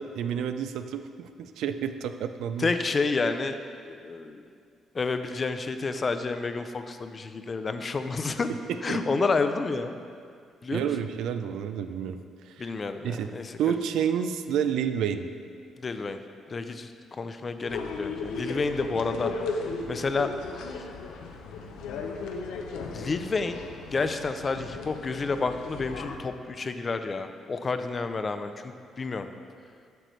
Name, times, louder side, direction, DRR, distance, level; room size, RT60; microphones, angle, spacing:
voice 1, 0.0-2.7 8.9-9.0 10.7-12.2 12.5-12.7 13.0-13.3 13.6-15.3, right 8 dB, 85° right, 9 dB, 0.3 m, -29 dB
voice 2, 2.6-3.6 3.9-4.4 4.9-8.5 8.8-10.1 10.6-10.9 12.6-13.5 15.8-16.2 16.5-16.9 17.2-19.3 19.9-20.3 22.9-23.6 23.9-29.3, left 4 dB, 35° left, 9 dB, 0.4 m, -29 dB
sound 1, 17.6-26.2, left 4 dB, 90° left, 0.5 m, -36 dB
7.7 x 6.6 x 3.1 m, 2.2 s
cardioid pair, 90°, 0 cm